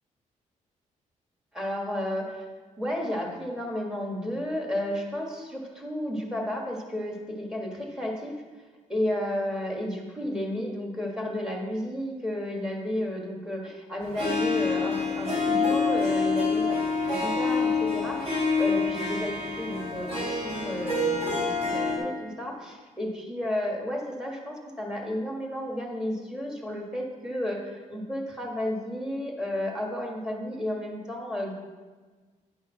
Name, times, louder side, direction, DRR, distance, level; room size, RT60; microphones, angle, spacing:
voice 1, 1.5-2.4 2.8-8.3 8.9-16.8 17.1-31.5, left 1 dB, 5° right, 0 dB, 1.5 m, -32 dB
Harp, 14.1-22.0, left 3 dB, 50° right, 2.6 m, -27 dB
9.9 x 5.6 x 4.4 m, 1.4 s
cardioid pair, 125°, 13 cm